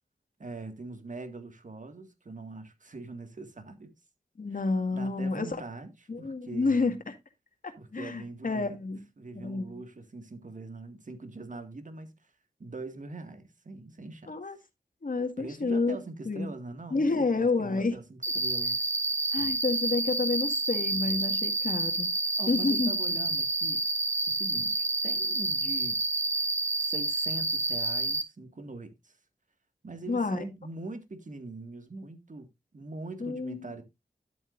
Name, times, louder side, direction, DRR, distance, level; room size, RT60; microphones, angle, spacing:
voice 1, 0.4-3.9 4.5-4.6 4.9-6.9 7.8-8.8 9.2-12.1 12.6-14.3 15.4-18.8 22.4-23.8 24.3-26.0 26.8-29.1 29.8-32.5 32.7-33.8, right 3 dB, 55° right, 1.9 m, -42 dB
voice 2, 4.4-5.6 6.1-7.1 7.6-9.0 9.3-9.8 14.3-14.6 15.0-16.0 16.3-16.5 16.9-18.0 19.3-22.1 22.5-22.9 30.1-30.4 33.2-33.6, left 3 dB, 60° left, 1.9 m, -29 dB
Cricket, 18.2-28.2, right 2 dB, 15° right, 1.1 m, -29 dB
11.5 x 8.0 x 2.6 m
cardioid pair, 55°, 16 cm